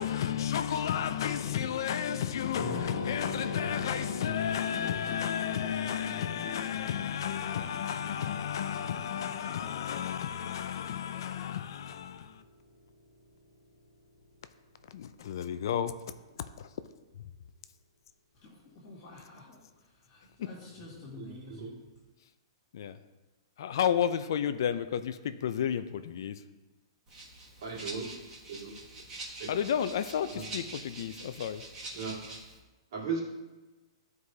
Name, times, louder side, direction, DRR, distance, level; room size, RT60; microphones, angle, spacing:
voice 1, 0.0-12.4 14.9-15.9 16.6-16.7 20.4-20.5 22.7-23.0 23.6-26.4 29.5-31.6, left 9 dB, 55° left, 0.3 m, -32 dB
sound 1, 2.5-15.4, left 1 dB, 85° left, 1.3 m, -45 dB
voice 2, 18.8-19.6 20.1-21.7, left 2 dB, 35° left, 1.9 m, -48 dB
voice 3, 21.1-21.7 27.6-28.1 28.5-28.7 29.4-29.5 30.3-30.4 31.9-32.3 32.9-33.2, right 5 dB, 55° right, 2.1 m, -37 dB
Rattle (instrument), 27.1-32.6, right 2 dB, 20° right, 1.4 m, -45 dB
12.0 x 4.7 x 2.8 m
hypercardioid pair, 175°, 3 cm